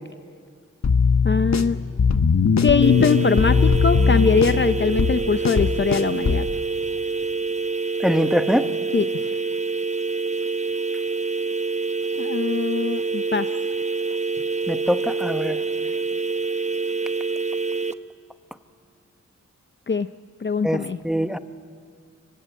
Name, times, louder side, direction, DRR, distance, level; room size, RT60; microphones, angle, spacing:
sound 1, 0.8-6.5, left 5 dB, 65° left, 1.2 m, -20 dB
voice 1, 1.2-1.8 2.6-6.4 8.9-9.4 12.2-13.5 19.9-20.1 20.4-21.0, left 5 dB, 40° left, 11 dB, 0.6 m, -22 dB
sound 2, 2.8-17.9, right 4 dB, 25° right, 0.9 m, -26 dB
voice 2, 8.0-8.7 14.7-15.6 20.6-21.4, equal, ahead, 9 dB, 1.2 m, -23 dB
26.0 x 23.5 x 9.3 m, 2.2 s
wide cardioid pair, 70°, 30 cm